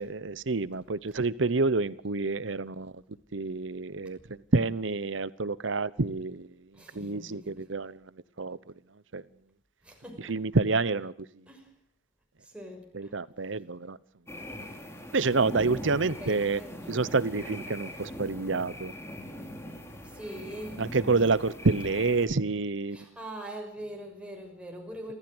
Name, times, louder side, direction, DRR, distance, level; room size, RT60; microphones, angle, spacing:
voice 1, 0.0-3.0 3.3-6.5 6.9-8.0 8.4-8.6 9.1-9.2 10.2-11.1 12.9-14.0 15.1-16.6 16.9-18.9 20.8-23.0, right 3 dB, 75° right, 18 dB, 0.9 m, -28 dB
voice 2, 6.7-7.6 9.8-10.4 11.5-11.7 12.5-13.1 16.2-16.9 20.1-20.8 22.9-25.1, right 1 dB, 5° right, 1 dB, 6.2 m, -42 dB
sound 1, 14.3-22.3, left 1 dB, 15° left, 3.3 m, -41 dB
27.5 x 14.5 x 7.9 m, 0.65 s
head